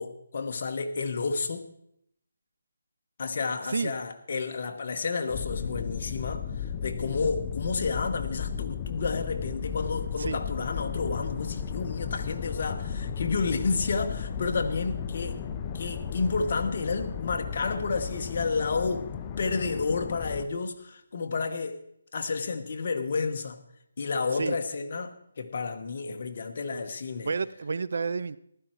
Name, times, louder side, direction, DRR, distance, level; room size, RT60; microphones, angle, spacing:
voice 1, 0.0-1.7 3.2-15.4 15.7-21.8 22.1-23.6 24.0-27.3, left 4 dB, 40° left, 6 dB, 1.2 m, -31 dB
sound 1, 5.3-20.5, left 7 dB, 20° left, 0.6 m, -34 dB
voice 2, 27.2-28.4, right 4 dB, 55° right, 18 dB, 0.5 m, -30 dB
14.5 x 12.5 x 4.5 m, 0.73 s
hypercardioid pair, 170°, 0 cm